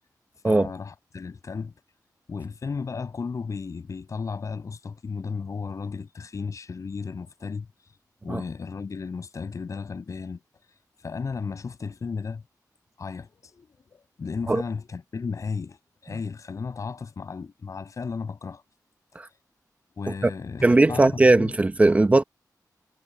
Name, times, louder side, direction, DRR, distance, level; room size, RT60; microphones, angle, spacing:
voice 1, 0.4-1.7 2.3-8.0 8.2-10.4 10.7-12.4 13.0-18.6 19.3-19.4 20.0-21.5, left 5 dB, 55° left, 6.2 m, -34 dB
voice 2, 20.6-22.2, right 2 dB, 20° right, 0.9 m, -18 dB
wide cardioid pair, 165°, 7 cm